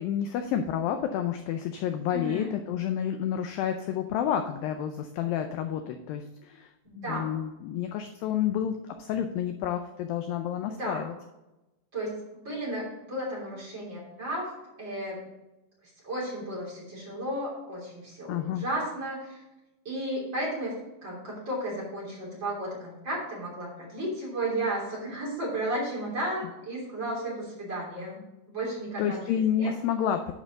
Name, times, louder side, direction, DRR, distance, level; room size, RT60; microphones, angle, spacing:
voice 1, 0.0-6.7 7.0-11.1 18.3-18.6 29.0-30.3, left 9 dB, 85° left, 7 dB, 2.0 m, -30 dB
voice 2, 2.1-2.5 6.8-7.3 10.7-11.1 11.9-14.5 14.8-15.2 16.0-19.4 19.9-28.2 28.5-29.7, right 1 dB, 30° right, -5 dB, 3.5 m, -34 dB
11.0 x 5.2 x 3.9 m, 0.99 s
omnidirectional pair, 4.8 m